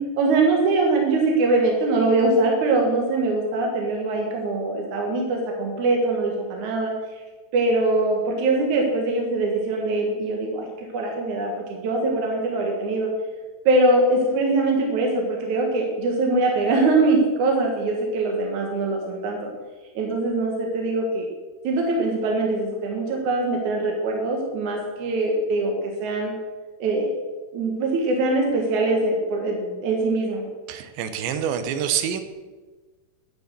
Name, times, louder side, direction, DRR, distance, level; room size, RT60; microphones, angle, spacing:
voice 1, 0.0-6.9 7.5-13.1 13.6-19.5 20.0-21.3 21.6-26.3 26.8-27.2 27.5-30.5, right 2 dB, 55° right, 1 dB, 2.4 m, -22 dB
voice 2, 30.7-32.2, right 9 dB, 85° right, 9 dB, 3.2 m, -26 dB
10.5 x 9.7 x 6.7 m, 1.3 s
omnidirectional pair, 5.0 m